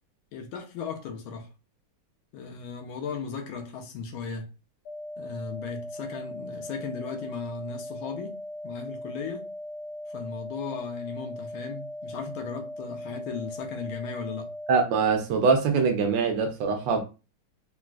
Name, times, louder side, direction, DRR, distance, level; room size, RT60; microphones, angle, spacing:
voice 1, 0.3-1.5 2.3-4.5 5.2-9.5 10.1-14.5, left 5 dB, 75° left, 1.4 m, -36 dB
sound 1, 4.8-14.8, left 1 dB, 60° left, 1.1 m, -39 dB
voice 2, 14.7-17.0, right 5 dB, 70° right, 1.2 m, -23 dB
3.9 x 2.3 x 2.3 m
omnidirectional pair, 2.3 m